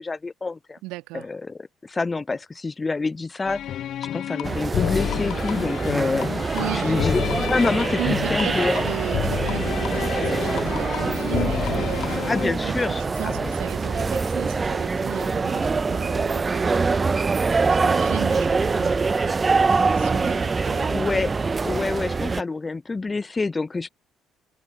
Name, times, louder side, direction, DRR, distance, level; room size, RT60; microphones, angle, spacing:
voice 1, 0.0-0.8 1.1-3.6 4.1-6.3 6.7-7.2 7.5-8.8 12.3-13.5 20.9-21.3 21.6-23.9, left 3 dB, 25° left, 0.8 m, -27 dB
voice 2, 0.8-1.3 6.5-7.5 7.7-12.2 12.6-12.7 13.2-21.0, right 21 dB, 65° right, 2.4 m, -36 dB
sound 1, 3.5-12.5, left 11 dB, 55° left, 0.4 m, -29 dB
sound 2, 4.4-22.4, right 4 dB, 30° right, 0.9 m, -24 dB
sound 3, 8.5-13.8, left 10 dB, 80° left, 1.6 m, -46 dB
open air
figure-of-eight pair, 45°, 0 cm